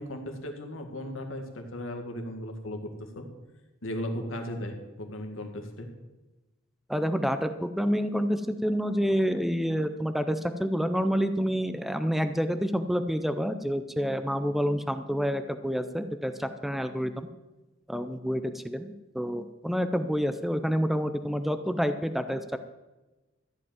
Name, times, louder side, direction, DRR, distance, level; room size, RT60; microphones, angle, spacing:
voice 1, 0.0-3.3 3.8-5.9, left 1 dB, 75° left, 4 dB, 1.9 m, -36 dB
voice 2, 6.9-17.3 17.9-22.6, equal, ahead, 9 dB, 0.5 m, -28 dB
14.5 x 5.2 x 9.3 m, 1.1 s
head